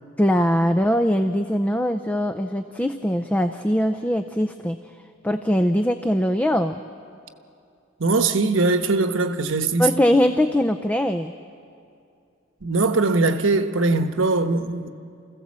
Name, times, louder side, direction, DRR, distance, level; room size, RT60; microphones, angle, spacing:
voice 1, 0.2-4.8 5.2-6.8 9.8-11.3, equal, 10° left, 0.5 m, -21 dB
voice 2, 8.0-9.9 12.6-14.9, right 3 dB, 80° right, 1.1 m, -21 dB
28.5 x 15.5 x 7.5 m
head